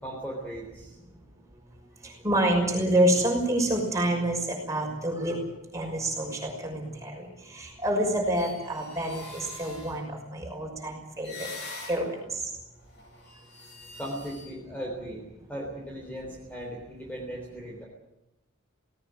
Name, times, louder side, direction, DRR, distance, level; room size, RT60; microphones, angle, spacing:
voice 1, 0.0-0.9 14.0-15.2 15.5-17.8, equal, 5° left, -2 dB, 3.6 m, -37 dB
voice 2, 2.0-5.4 5.7-11.5 11.9-12.4, right 1 dB, 15° right, 0 dB, 6.0 m, -27 dB
sound 1, 8.2-10.2 11.2-12.3 12.8-14.5, left 3 dB, 50° left, 7.8 m, -44 dB
18.5 x 18.0 x 8.9 m, 0.92 s
head